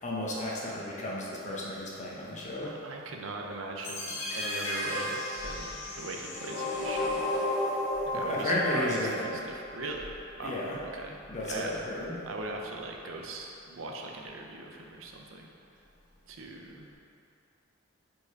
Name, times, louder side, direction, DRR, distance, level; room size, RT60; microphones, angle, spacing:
voice 1, 0.0-2.7 8.1-9.4 10.4-10.8 11.3-12.2, left 1 dB, 40° left, -4 dB, 1.0 m, -33 dB
voice 2, 2.6-7.2 8.1-11.2 11.4-11.7 12.3-15.5 16.3-16.9, right 2 dB, 85° right, 1 dB, 0.7 m, -40 dB
sound 1, 3.8-9.9, left 1 dB, 70° left, 1.4 m, -33 dB
5.1 x 4.6 x 4.7 m, 2.7 s
head